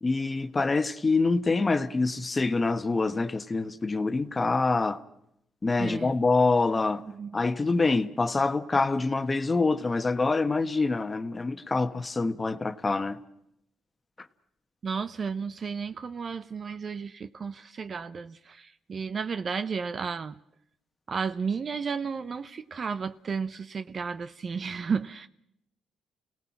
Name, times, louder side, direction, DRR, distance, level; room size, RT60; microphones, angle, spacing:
voice 1, 0.0-5.0 5.6-7.0 7.3-13.2, left 3 dB, 25° left, 1.3 m, -26 dB
voice 2, 5.8-6.1 7.0-7.4 14.8-20.3 21.1-25.3, right 5 dB, 45° right, 0.8 m, -33 dB
29.5 x 18.0 x 5.9 m
cardioid pair, 90°, 0 cm